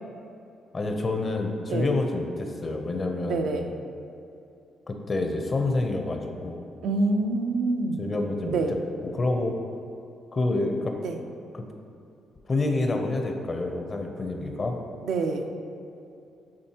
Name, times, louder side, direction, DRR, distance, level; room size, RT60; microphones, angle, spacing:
voice 1, 0.7-3.4 4.9-6.6 8.0-9.6 10.3-11.0 11.5-11.6 12.5-14.8, left 2 dB, 30° left, 4 dB, 0.6 m, -28 dB
voice 2, 3.2-3.7 6.8-8.0 8.5-8.7 11.0-11.2 15.0-15.5, right 3 dB, 70° right, 4 dB, 0.5 m, -26 dB
8.6 x 4.1 x 2.9 m, 2.6 s
cardioid pair, 105°, 0 cm